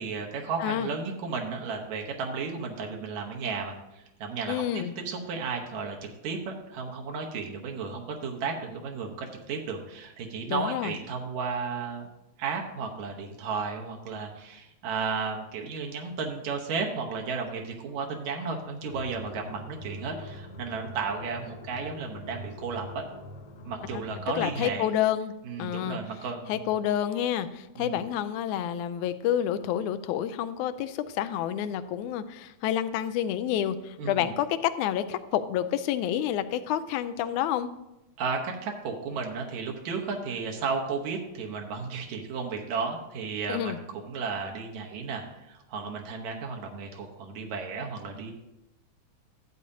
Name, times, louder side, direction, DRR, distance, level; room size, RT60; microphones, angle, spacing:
voice 1, 0.0-12.1 12.4-23.1 23.7-24.9 25.4-26.7 27.8-28.0 34.0-34.3 38.2-48.3, right 5 dB, 75° right, 1 dB, 2.4 m, -34 dB
voice 2, 4.5-4.9 10.5-10.9 23.9-24.0 24.4-25.3 25.6-26.0 26.5-37.7 43.5-43.8, left 10 dB, 90° left, 11 dB, 2.0 m, -29 dB
sound 1, 18.9-24.5, left 1 dB, 60° left, 1.5 m, -44 dB
12.0 x 8.4 x 2.7 m, 0.93 s
omnidirectional pair, 3.3 m